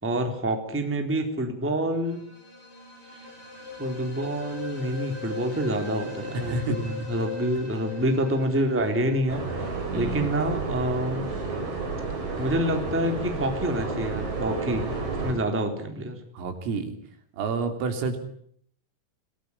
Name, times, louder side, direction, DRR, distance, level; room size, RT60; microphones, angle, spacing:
voice 1, 0.0-2.2 3.1-3.2 3.8-9.4 9.9-11.2 12.4-14.9 15.2-16.2, right 1 dB, 5° right, 5 dB, 2.5 m, -27 dB
sound 1, 1.9-10.7, left 3 dB, 25° left, 7.3 m, -40 dB
voice 2, 6.3-6.8 9.9-10.3 16.3-17.0 17.4-18.2, right 3 dB, 80° right, 6 dB, 5.9 m, -29 dB
sound 2, 9.3-15.3, right 3 dB, 35° right, 6.0 m, -31 dB
26.0 x 19.0 x 9.9 m, 0.64 s
omnidirectional pair, 5.8 m